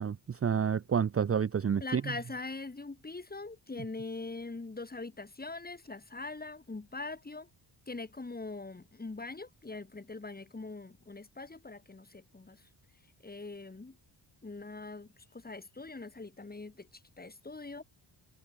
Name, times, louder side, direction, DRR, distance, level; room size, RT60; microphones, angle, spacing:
voice 1, 0.0-2.0, right 7 dB, 30° right, 0.7 m, -29 dB
voice 2, 1.8-7.5 7.9-12.6 13.2-14.0 14.4-16.9 17.2-17.8, left 3 dB, 20° left, 5.4 m, -42 dB
wide cardioid pair, 145°, 47 cm